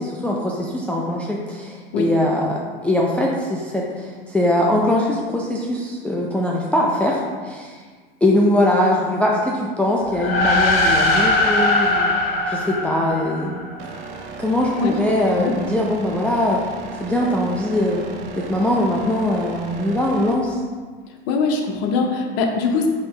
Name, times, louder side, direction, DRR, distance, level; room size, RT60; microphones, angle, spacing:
voice 1, 0.0-7.8 8.2-12.1 12.5-13.6 14.4-16.6 17.0-18.0 18.4-20.6, left 1 dB, 5° left, -3 dB, 0.4 m, -21 dB
sound 1, 10.1-13.8, left 2 dB, 85° left, 0.8 m, -20 dB
sound 2, 13.8-20.3, right 4 dB, 55° right, 0.7 m, -36 dB
voice 2, 21.3-22.9, left 4 dB, 55° left, 2 dB, 0.8 m, -21 dB
5.3 x 2.9 x 3.2 m, 1.5 s
hypercardioid pair, 90°, 29 cm